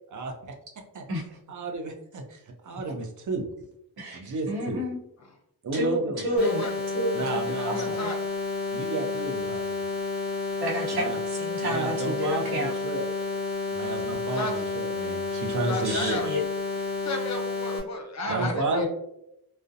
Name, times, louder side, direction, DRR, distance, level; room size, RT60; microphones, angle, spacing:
voice 1, 0.1-0.5 0.9-1.0 1.5-3.5 4.1-4.8 5.6-6.3 7.1-8.0 8.7-9.9 10.9-11.2 11.6-13.0 13.7-16.2 18.3-18.9, right 3 dB, 55° right, 3 dB, 0.5 m, -32 dB
voice 2, 4.0-5.0 5.7-8.1 10.6-12.7 15.8-16.4 16.7-16.9 18.2-18.9, equal, 80° right, -3 dB, 0.8 m, -30 dB
voice 3, 6.4-6.7 7.6-8.3 14.3-14.5 15.7-16.3 17.0-18.9, left 2 dB, 45° left, 3 dB, 0.5 m, -33 dB
sound 1, 6.4-17.8, left 3 dB, ahead, 0.8 m, -31 dB
2.5 x 2.0 x 2.5 m, 0.82 s
wide cardioid pair, 140°, 38 cm